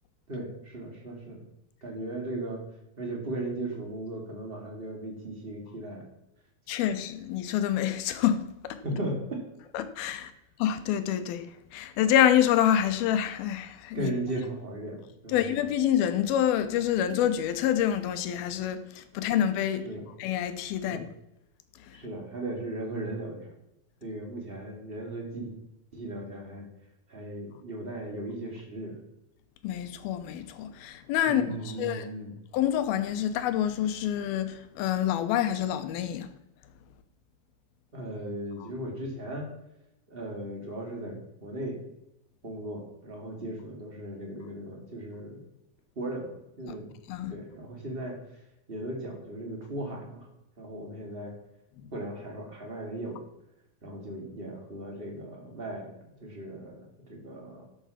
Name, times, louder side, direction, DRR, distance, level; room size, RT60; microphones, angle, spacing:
voice 1, 0.3-1.4 1.8-2.6 3.0-6.1 8.8-9.4 13.9-15.0 15.2-15.4 19.8-20.0 20.9-21.0 21.9-23.5 24.0-25.5 25.9-26.7 27.1-29.0 31.2-32.4 37.9-39.5 40.1-41.8 42.4-45.4 46.0-46.9 47.3-48.2 48.7-50.3 50.6-51.3 51.9-53.2 53.8-57.6, right 1 dB, 20° right, 2.2 m, -37 dB
voice 2, 6.7-8.8 9.7-10.3 10.6-11.5 11.7-14.1 15.3-19.9 20.2-21.0 21.9-22.0 29.6-32.1 32.5-36.3 38.6-38.7 46.7-46.8 47.1-47.3 51.8-51.9, left 10 dB, 80° left, 2.8 m, -27 dB
12.0 x 7.1 x 5.8 m
omnidirectional pair, 4.3 m